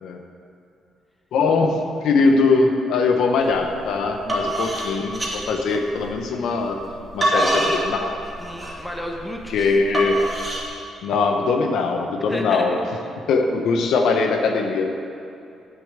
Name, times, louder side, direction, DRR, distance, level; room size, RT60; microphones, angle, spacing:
voice 1, 1.3-6.8 7.1-8.2 9.5-10.2 11.0-12.8 13.3-14.8, left 4 dB, 75° left, 3 dB, 0.9 m, -21 dB
sound 1, 3.5-3.7 4.1-6.2 6.8-10.6, right 1 dB, 20° right, 2.6 m, -25 dB
voice 2, 8.4-9.7 12.3-12.8, equal, 5° left, 0 dB, 1.5 m, -33 dB
8.6 x 7.0 x 7.3 m, 2.6 s
cardioid pair, 90°, 0 cm